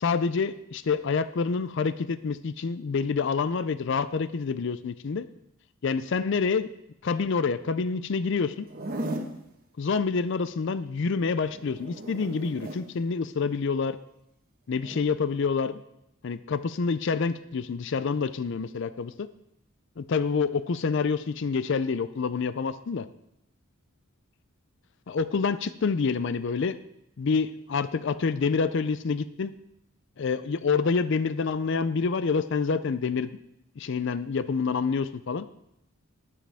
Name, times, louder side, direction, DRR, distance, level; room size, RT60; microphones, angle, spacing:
voice 1, 0.0-5.2 5.8-6.7 7.0-8.7 9.8-14.0 14.7-15.8 16.2-19.3 20.0-23.1 25.1-26.8 27.2-29.5 30.2-33.3 33.8-35.5, left 5 dB, 60° left, 13 dB, 0.4 m, -27 dB
Zipper (clothing), 8.6-9.4 11.5-12.8 14.7-15.0, right 1 dB, 40° right, 1.2 m, -36 dB
19.5 x 7.5 x 3.5 m, 0.82 s
head